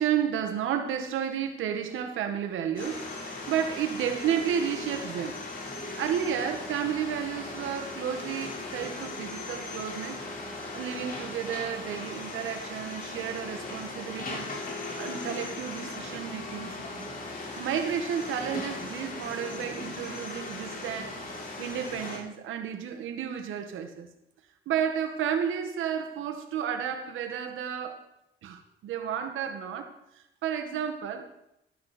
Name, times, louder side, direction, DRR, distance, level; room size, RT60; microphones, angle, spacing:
voice 1, 0.0-5.4 5.9-10.2 10.7-14.5 14.9-16.7 17.6-21.2 21.6-24.1 24.7-28.0 28.4-31.3, right 8 dB, 85° right, 1.8 m, -32 dB
sound 1, 2.8-22.2, left 2 dB, 45° left, 5.1 m, -38 dB
13.5 x 12.5 x 4.5 m
cardioid pair, 90°, 20 cm